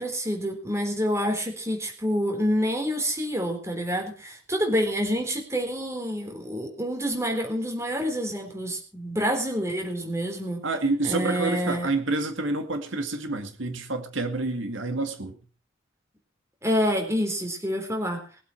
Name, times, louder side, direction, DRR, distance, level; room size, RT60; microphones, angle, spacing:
voice 1, 0.0-10.6 11.0-11.9 16.6-18.2, equal, 15° right, 3 dB, 3.8 m, -27 dB
voice 2, 10.6-15.3, right 3 dB, 80° right, 7 dB, 2.1 m, -28 dB
21.0 x 8.3 x 5.7 m, 0.37 s
head